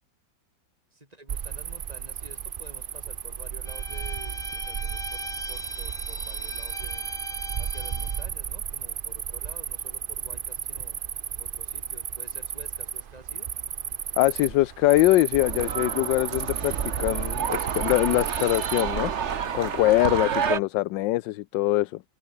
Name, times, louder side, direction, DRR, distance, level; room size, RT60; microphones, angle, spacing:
voice 1, 0.9-7.1 7.6-11.0 11.4-13.5, right 2 dB, 20° right, 6.1 m, -50 dB
Cricket, 1.3-20.2, right 8 dB, 80° right, 0.4 m, -34 dB
Bowed string instrument, 3.6-8.3, left 1 dB, 15° left, 6.3 m, -39 dB
voice 2, 14.2-19.1 19.5-22.0, left 17 dB, 85° left, 1.3 m, -23 dB
sound 1, 15.4-20.6, right 7 dB, 45° right, 1.2 m, -30 dB
omnidirectional pair, 2.0 m